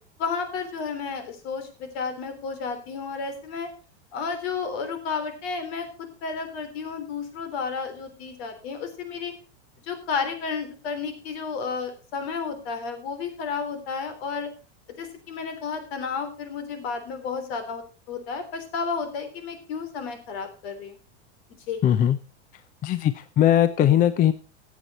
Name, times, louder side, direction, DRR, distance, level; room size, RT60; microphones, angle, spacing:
voice 1, 0.2-3.7 4.1-9.3 9.9-14.5 15.0-21.0 21.7-21.8, left 5 dB, 60° left, 8 dB, 3.5 m, -32 dB
voice 2, 21.8-22.2 22.8-24.3, left 11 dB, 25° left, 13 dB, 0.6 m, -20 dB
14.0 x 8.3 x 4.2 m, 0.35 s
supercardioid pair, 140°, 34 cm